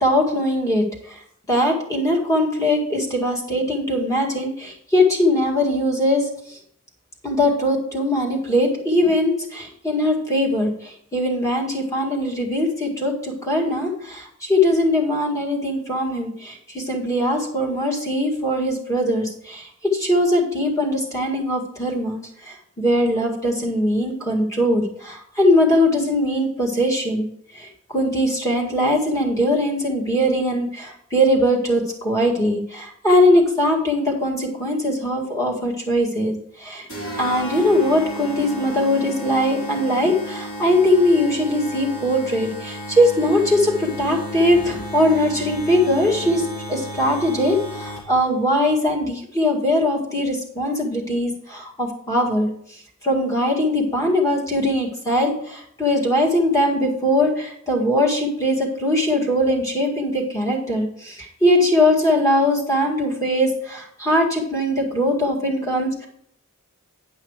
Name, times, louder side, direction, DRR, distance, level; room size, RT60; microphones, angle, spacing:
voice 1, 0.0-0.8 1.5-6.3 7.2-27.3 27.6-36.3 36.6-36.9 37.2-52.5 53.0-66.1, left 1 dB, 15° left, -2 dB, 1.9 m, -21 dB
sound 1, 36.9-48.3, right 1 dB, 65° left, 3.8 m, -33 dB
10.0 x 5.6 x 4.8 m, 0.66 s
head